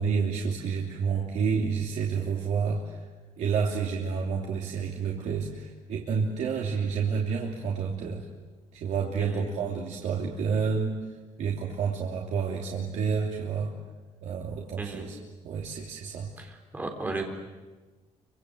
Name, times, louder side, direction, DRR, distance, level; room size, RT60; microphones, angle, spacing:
voice 1, 0.0-3.0 3.4-8.3 8.7-10.9 11.4-13.7 14.2-15.2 15.4-16.3, right 6 dB, 70° right, -1 dB, 3.0 m, -29 dB
voice 2, 14.8-15.1 16.4-17.2, right 3 dB, 15° right, 3 dB, 3.8 m, -35 dB
29.5 x 25.5 x 7.9 m, 1.2 s
cardioid pair, 175°, 13 cm